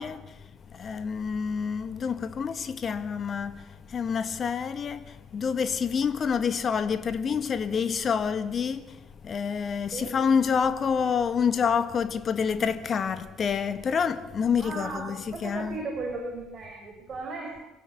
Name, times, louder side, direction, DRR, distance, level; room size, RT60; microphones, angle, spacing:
voice 1, 0.0-15.8, left 6 dB, 40° left, 1.5 m, -28 dB
voice 2, 14.6-15.0 15.3-17.6, right 3 dB, 40° right, 6.1 m, -36 dB
26.0 x 17.0 x 8.3 m
figure-of-eight pair, 55°, 0 cm